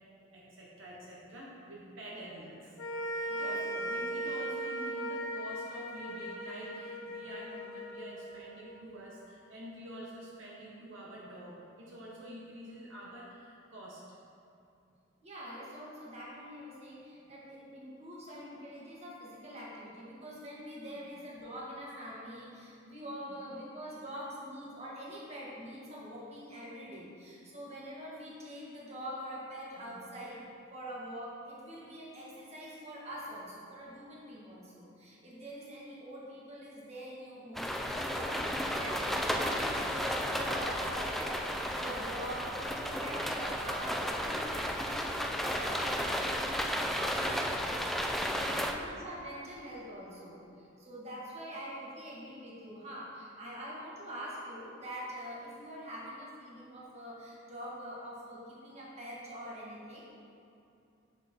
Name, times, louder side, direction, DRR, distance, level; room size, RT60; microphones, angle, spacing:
voice 1, 0.3-2.8 3.0-14.1 20.8-21.0 23.1-23.4 23.9-24.0 29.8-30.0 48.4-48.6, right 1 dB, 70° right, -5 dB, 1.2 m, -47 dB
sound 1, 2.8-9.2, right 1 dB, 70° left, 0.7 m, -38 dB
voice 2, 3.3-3.9 15.2-30.4 30.7-42.4 42.8-60.1, equal, 35° right, -6 dB, 1.7 m, -45 dB
sound 2, 37.5-48.7, equal, ahead, 0.4 m, -33 dB
7.2 x 5.5 x 4.4 m, 2.6 s
head